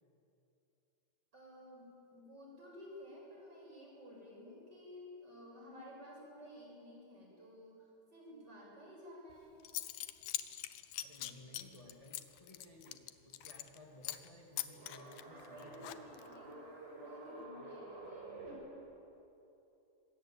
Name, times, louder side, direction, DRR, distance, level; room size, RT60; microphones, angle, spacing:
voice 1, 1.3-9.5 14.9-18.6, left 1 dB, 20° right, -3 dB, 8.1 m, -54 dB
Zipper (clothing) / Coin (dropping), 9.3-9.4 9.6-13.8 14.0-14.3 14.6-16.3, left 14 dB, 85° left, 2.0 m, -43 dB
voice 2, 11.0-16.2, left 1 dB, 60° left, -1 dB, 0.3 m, -57 dB
sound 1, 14.7-18.5, right 2 dB, 55° right, 7.4 m, -51 dB
25.5 x 21.0 x 9.0 m, 2.9 s
omnidirectional pair, 5.3 m